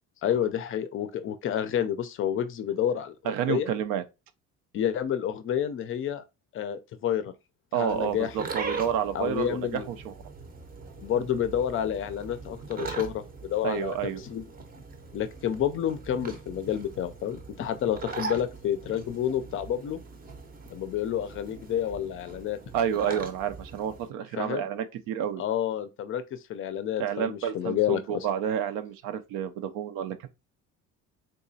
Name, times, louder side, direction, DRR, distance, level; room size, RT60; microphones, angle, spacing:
voice 1, 0.2-3.7 4.7-6.2 6.5-7.3 7.7-8.3 9.1-9.9 11.0-14.4 15.1-20.0 20.7-22.6 24.4-24.6 25.4-28.3, left 10 dB, 40° left, 0.4 m, -29 dB
voice 2, 3.3-4.0 7.7-10.1 13.6-14.2 22.7-25.4 27.0-30.2, right 9 dB, 90° right, 0.5 m, -30 dB
sound 1, 7.9-24.1, right 4 dB, 25° right, 0.6 m, -41 dB
3.7 x 2.8 x 2.7 m
cardioid pair, 140°, 33 cm